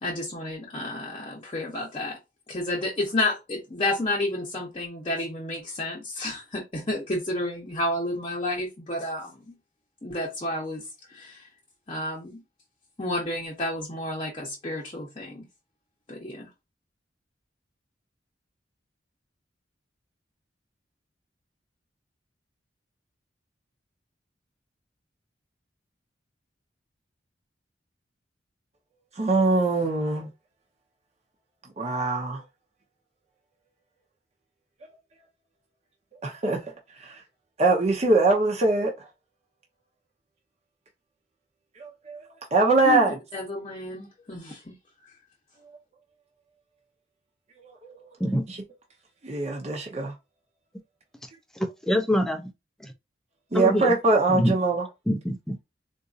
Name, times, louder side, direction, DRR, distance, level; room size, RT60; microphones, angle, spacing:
voice 1, 0.0-2.2 2.5-9.6 10.0-11.5 11.9-12.4 13.0-15.5 16.1-16.5 42.8-43.0 43.3-44.7, left 1 dB, 30° left, 0.8 m, -31 dB
voice 2, 29.1-30.3 31.8-32.4 36.2-36.6 37.0-37.2 37.6-39.1 41.8-42.2 42.5-43.1 47.6-48.0 48.5-48.6 49.2-50.1 53.5-54.9, right 3 dB, 35° right, 0.7 m, -23 dB
voice 3, 51.6-52.5 52.8-52.9 53.5-53.9 54.3-54.5 55.1-55.6, equal, 5° left, 0.4 m, -25 dB
3.9 x 2.5 x 2.4 m
head